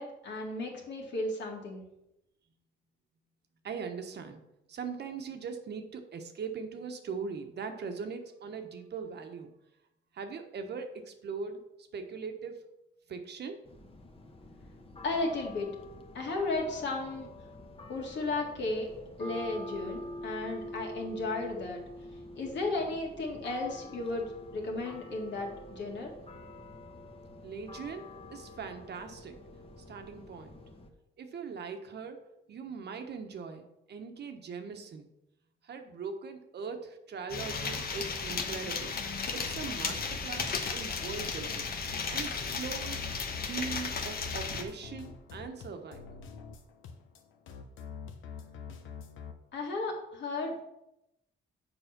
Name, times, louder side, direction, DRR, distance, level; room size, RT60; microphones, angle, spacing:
voice 1, 0.0-1.8 15.0-15.7 16.1-17.3 17.9-18.9 19.2-21.8 22.3-26.1 49.5-50.7, left 2 dB, 65° left, 0 dB, 2.2 m, -34 dB
voice 2, 3.6-4.4 4.7-9.5 10.1-11.6 11.9-12.6 13.1-13.6 27.4-29.4 29.8-30.6 31.2-32.2 32.5-35.1 35.6-39.0 39.3-41.7 42.1-43.1 43.4-46.2, right 5 dB, 55° right, 6 dB, 1.2 m, -40 dB
sound 1, 13.7-30.9, left 1 dB, 30° left, 1.1 m, -46 dB
sound 2, 37.3-44.6, left 5 dB, 50° left, 1.1 m, -35 dB
sound 3, 39.4-49.3, left 6 dB, 80° left, 1.0 m, -46 dB
7.1 x 4.7 x 6.0 m, 0.87 s
cardioid pair, 90°, 20 cm